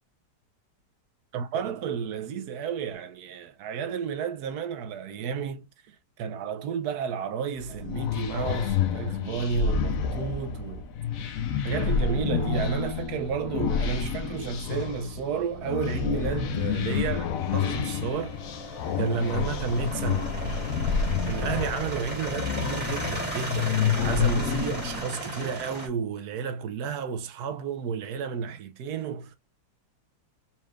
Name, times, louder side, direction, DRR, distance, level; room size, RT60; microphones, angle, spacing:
voice 1, 1.3-10.9 11.6-18.4 19.0-20.3 21.2-29.4, right 6 dB, 70° right, 1.1 m, -32 dB
sound 1, 7.6-25.0, left 7 dB, 65° left, 0.9 m, -29 dB
sound 2, 16.8-25.9, right 1 dB, 5° right, 1.7 m, -36 dB
4.4 x 3.1 x 2.3 m
omnidirectional pair, 1.8 m